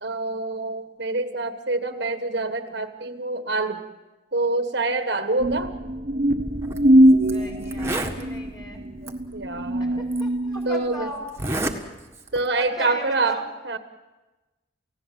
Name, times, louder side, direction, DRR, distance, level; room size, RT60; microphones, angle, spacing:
voice 1, 0.0-3.8 4.3-5.7 9.3-10.0 10.6-11.1 12.3-13.8, right 3 dB, 60° right, 8 dB, 1.4 m, -26 dB
sound 1, 5.4-11.1, right 1 dB, 45° right, 1.2 m, -22 dB
Zipper (clothing), 6.6-6.8 7.3-7.4 7.6-8.2 9.1-9.2 10.1-10.2 11.3-11.8 12.1-12.5, right 2 dB, 15° right, 1.6 m, -28 dB
voice 2, 7.2-8.8 9.8-11.8 12.6-13.4, equal, 20° left, 1 dB, 4.2 m, -38 dB
30.0 x 17.0 x 7.6 m, 1.1 s
head